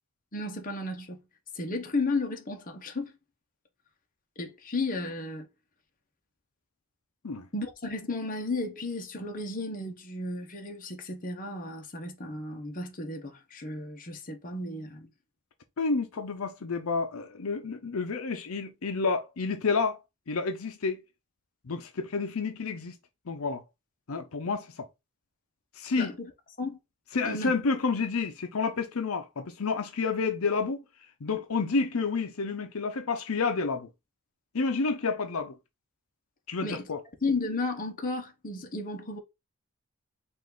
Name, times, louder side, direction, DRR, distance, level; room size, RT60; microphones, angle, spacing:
voice 1, 0.3-1.2 1.5-3.1 4.4-5.5 7.5-15.1 26.0-26.3 26.6-26.8 27.2-27.5 36.6-36.9 37.2-39.2, left 2 dB, 40° left, 1.0 m, -33 dB
voice 2, 15.8-20.0 20.3-21.0 21.6-22.9 23.3-23.6 24.1-24.9 25.7-26.1 27.1-30.8 31.2-33.9 34.5-35.6 36.5-37.0, left 4 dB, 80° left, 0.7 m, -29 dB
5.2 x 2.6 x 3.8 m
head